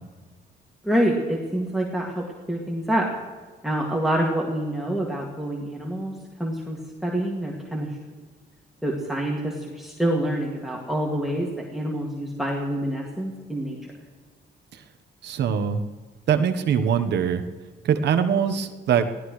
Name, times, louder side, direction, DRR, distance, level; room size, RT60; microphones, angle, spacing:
voice 1, 0.8-3.1 3.6-8.0 8.8-13.8, right 1 dB, ahead, -2 dB, 2.3 m, -27 dB
voice 2, 15.2-15.8 16.3-17.4 17.8-19.1, right 7 dB, 70° right, 8 dB, 1.2 m, -22 dB
23.0 x 17.0 x 3.3 m, 1.4 s
cardioid pair, 120°, 18 cm